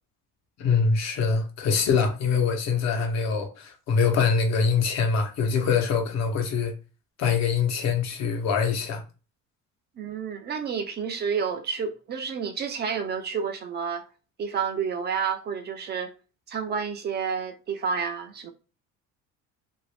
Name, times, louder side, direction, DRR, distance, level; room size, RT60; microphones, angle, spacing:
voice 1, 0.6-6.7 7.2-9.0, left 5 dB, 60° left, 0.9 m, -24 dB
voice 2, 10.0-14.0 14.4-16.1 16.5-18.5, right 6 dB, 35° right, 0.4 m, -30 dB
3.0 x 2.6 x 3.2 m
cardioid pair, 165°, 30 cm